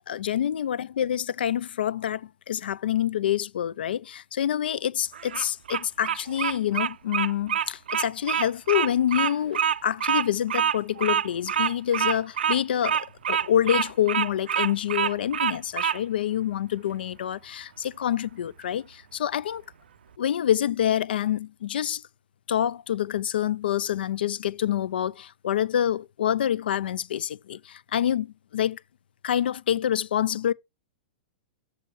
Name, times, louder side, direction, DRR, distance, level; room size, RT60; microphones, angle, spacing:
voice 1, 0.1-19.6 20.2-22.0 22.5-28.8 29.2-30.5, left 10 dB, 80° left, 0.4 m, -27 dB
Bird vocalization bird call bird song, 5.1-16.0, right 8 dB, 85° right, 0.4 m, -26 dB
6.6 x 5.5 x 4.5 m
hypercardioid pair, 135°, 5 cm